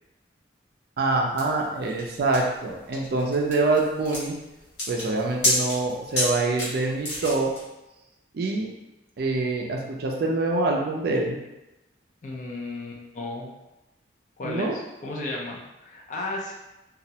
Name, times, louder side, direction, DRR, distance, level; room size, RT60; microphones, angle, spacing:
voice 1, 1.0-4.4 4.9-7.5 8.3-8.7 9.2-11.4 14.4-14.7, right 2 dB, 55° right, 0 dB, 0.4 m, -25 dB
sound 1, 1.4-7.6, left 1 dB, 65° left, 1.0 m, -29 dB
voice 2, 12.2-13.5 14.4-16.5, left 2 dB, 40° left, -2 dB, 0.4 m, -34 dB
2.3 x 2.0 x 2.7 m, 0.97 s
head